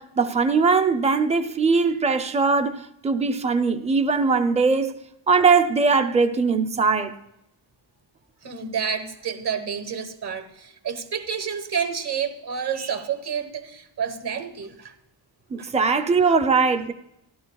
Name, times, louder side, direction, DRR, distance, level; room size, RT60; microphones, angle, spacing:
voice 1, 0.0-7.2 15.5-16.9, right 4 dB, 15° right, 0.5 m, -21 dB
voice 2, 8.4-14.9 15.6-15.7, right 7 dB, 55° right, 1.3 m, -29 dB
15.0 x 12.0 x 2.3 m
wide cardioid pair, 150°, 46 cm